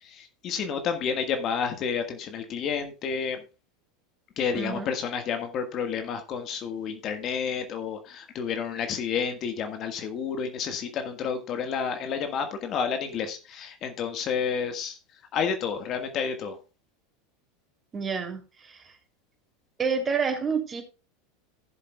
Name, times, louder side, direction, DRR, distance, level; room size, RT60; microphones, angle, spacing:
voice 1, 0.0-3.4 4.4-15.0 15.3-16.6, left 6 dB, 45° left, 7 dB, 1.6 m, -30 dB
voice 2, 4.5-4.9 17.9-18.8 19.8-20.8, right 5 dB, 25° right, 4 dB, 3.0 m, -29 dB
15.5 x 7.4 x 2.3 m, 0.31 s
hypercardioid pair, 90°, 0 cm